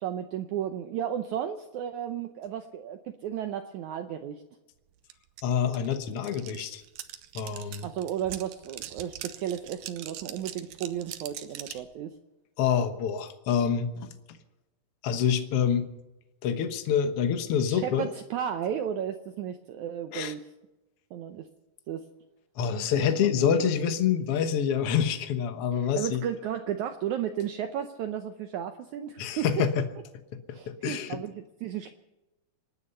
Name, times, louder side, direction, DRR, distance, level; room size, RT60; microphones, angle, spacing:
voice 1, 0.0-4.4 7.8-12.1 17.7-20.4 21.1-21.5 21.9-22.1 23.3-23.6 25.7-29.7 30.5-31.9, right 9 dB, 90° right, 7 dB, 1.7 m, -34 dB
sound 1, 5.1-5.2 5.4-11.9, right 12 dB, 70° right, 2.1 m, -42 dB
voice 2, 5.4-6.8 7.3-7.9 12.6-14.1 15.0-15.9 16.4-18.1 20.1-20.3 22.6-26.2 29.2-29.9 30.3-30.4 30.7-31.2, left 8 dB, 70° left, 8 dB, 1.3 m, -26 dB
27.0 x 9.7 x 5.5 m, 1.0 s
omnidirectional pair, 4.4 m